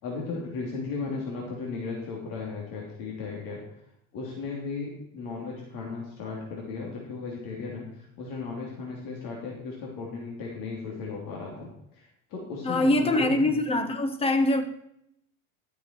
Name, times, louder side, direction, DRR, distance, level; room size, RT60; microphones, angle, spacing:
voice 1, 0.0-3.6 4.1-13.6, left 4 dB, 50° left, 3.2 m, -36 dB
voice 2, 12.6-14.6, left 1 dB, 15° left, 1.1 m, -23 dB
13.0 x 7.5 x 4.6 m
supercardioid pair, 140°, 43 cm